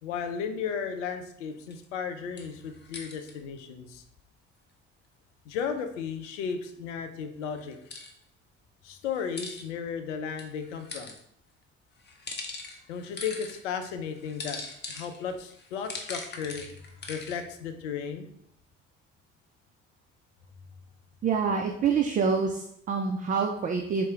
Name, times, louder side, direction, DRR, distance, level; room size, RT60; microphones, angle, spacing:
voice 1, 0.0-4.0 5.5-7.8 8.8-11.1 12.9-16.7 17.1-18.3, left 6 dB, 75° left, 7 dB, 0.5 m, -35 dB
sound 1, 1.7-1.8 2.4-3.3 7.6-8.1 9.1-9.6 10.4-11.2 12.0-13.6 14.2-17.4, left 3 dB, 30° left, 0.8 m, -41 dB
voice 2, 21.2-24.0, right 5 dB, 25° right, 4 dB, 0.3 m, -26 dB
4.1 x 2.1 x 3.5 m, 0.71 s
figure-of-eight pair, 50°, 37 cm